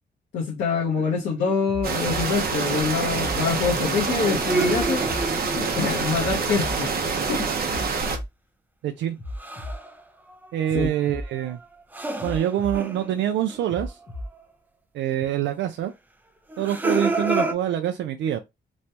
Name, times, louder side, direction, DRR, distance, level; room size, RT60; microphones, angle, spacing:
voice 1, 0.3-5.1 5.5-6.9 7.3-7.9 10.7-10.9, left 5 dB, 85° left, 0.9 m, -25 dB
sound 1, 0.9-1.7 3.8-6.4 9.4-10.0 10.3-13.9 14.4-14.5 16.5-17.5, right 2 dB, 10° right, 0.4 m, -30 dB
sound 2, 1.7-2.3 3.2-3.8 4.7-5.3 6.2-6.8 7.7-8.3 9.2-9.8 10.7-11.3 12.2-12.8 13.7-14.3 15.2-15.3, left 1 dB, 35° left, 0.7 m, -34 dB
sound 3, 1.8-8.2, right 4 dB, 55° right, 0.7 m, -26 dB
voice 2, 8.8-9.2 10.5-11.6 12.2-13.9 14.9-15.9 16.6-18.4, right 11 dB, 85° right, 0.4 m, -25 dB
3.1 x 2.2 x 2.7 m
cardioid pair, 115°, 19 cm